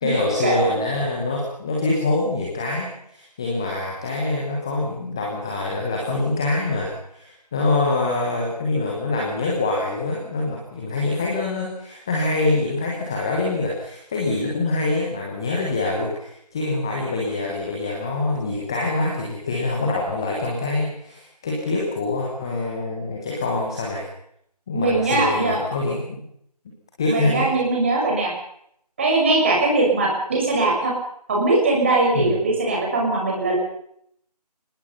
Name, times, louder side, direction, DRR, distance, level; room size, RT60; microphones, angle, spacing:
voice 1, 0.0-24.1 24.7-26.2 27.0-27.5 32.1-32.4, left 2 dB, 5° left, -1 dB, 1.2 m, -25 dB
voice 2, 24.7-25.6 27.0-28.3 29.0-30.9 31.3-33.6, right 2 dB, 20° right, -2 dB, 6.2 m, -20 dB
25.0 x 20.0 x 5.6 m, 0.70 s
figure-of-eight pair, 170°, 21 cm